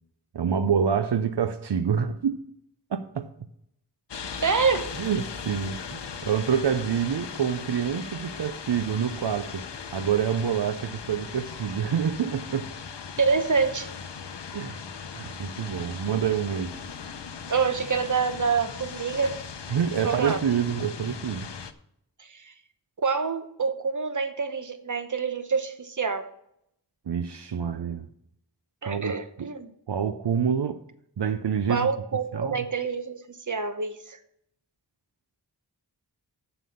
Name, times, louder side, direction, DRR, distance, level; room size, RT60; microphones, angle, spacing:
voice 1, 0.3-2.4 2.9-3.3 5.0-12.7 14.5-14.8 15.1-16.7 19.7-21.5 27.1-28.1 28.8-29.5 29.9-30.8 31.2-31.9 32.3-32.7, right 7 dB, 75° right, 0.6 m, -27 dB
sound 1, 4.1-21.7, left 6 dB, 85° left, 0.7 m, -38 dB
voice 2, 4.4-4.9 13.2-13.9 17.5-19.4 20.0-20.4 22.2-22.5 23.0-26.3 28.8-29.7 31.7-34.2, right 5 dB, 45° right, 0.9 m, -26 dB
7.5 x 6.9 x 6.9 m
wide cardioid pair, 55°, 41 cm